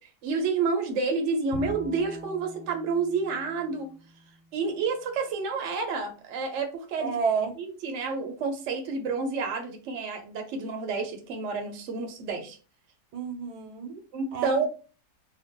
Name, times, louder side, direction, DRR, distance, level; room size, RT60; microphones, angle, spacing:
voice 1, 0.2-3.9 4.5-7.1 7.6-12.6 14.1-14.7, right 4 dB, 60° right, 0.8 m, -29 dB
Bowed string instrument, 1.5-4.8, equal, 90° left, 1.3 m, -43 dB
voice 2, 7.0-7.6 13.1-14.0 14.3-14.7, right 6 dB, 85° right, 1.2 m, -30 dB
2.8 x 2.2 x 2.8 m
omnidirectional pair, 1.7 m